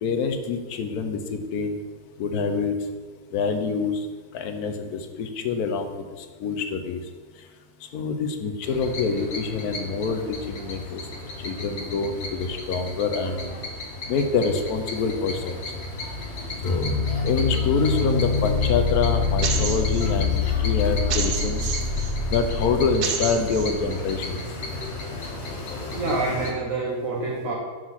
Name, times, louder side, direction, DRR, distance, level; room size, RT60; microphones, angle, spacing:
voice 1, 0.0-1.8 2.2-2.8 3.3-4.1 4.3-7.0 7.9-11.0 11.4-13.6 14.1-15.6 16.6-16.9 17.2-21.6 22.3-24.4, left 5 dB, 70° left, 7 dB, 1.1 m, -26 dB
sound 1, 8.6-26.5, left 2 dB, 45° left, 1.1 m, -35 dB
sound 2, 16.6-23.8, left 5 dB, 85° left, 0.4 m, -25 dB
sound 3, 19.4-20.1 21.1-22.1 23.0-23.7, right 6 dB, 90° right, 1.4 m, -29 dB
voice 2, 25.9-27.5, right 3 dB, 55° right, -3 dB, 1.2 m, -27 dB
5.9 x 4.7 x 5.6 m, 1.5 s
omnidirectional pair, 1.8 m